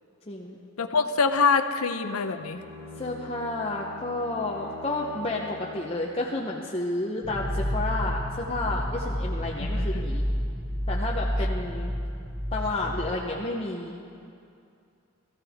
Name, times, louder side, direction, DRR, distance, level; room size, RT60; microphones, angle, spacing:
voice 1, 0.3-0.6 3.0-10.3 10.9-11.9 12.5-14.0, left 2 dB, 25° left, -2 dB, 0.8 m, -31 dB
voice 2, 0.8-2.6 9.6-9.9, left 5 dB, 85° left, 9 dB, 0.7 m, -24 dB
Bowed string instrument, 2.3-6.5, left 1 dB, 70° right, 2.7 m, -45 dB
sound 1, 7.2-13.1, equal, 15° right, 1.1 m, -29 dB
18.0 x 15.0 x 3.6 m, 2.5 s
head